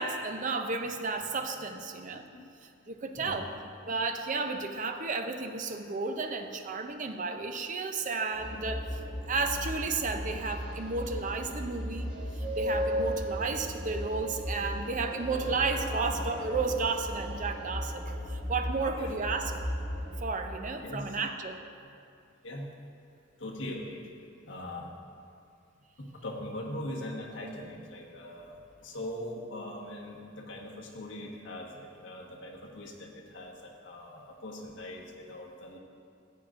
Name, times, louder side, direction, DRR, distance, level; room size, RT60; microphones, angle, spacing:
voice 1, 0.0-2.2 2.9-3.5 3.9-9.0 9.3-19.6 20.2-21.6, right 4 dB, 40° right, 6 dB, 0.5 m, -33 dB
voice 2, 3.1-3.5 3.8-3.9 19.0-19.1 20.7-21.2 22.4-22.7 23.4-24.0 24.4-24.9 26.0-35.8, left 1 dB, 65° left, -2 dB, 1.3 m, -41 dB
sound 1, 8.3-20.1, equal, 5° right, 2.4 m, -36 dB
13.5 x 8.8 x 2.5 m, 2.5 s
head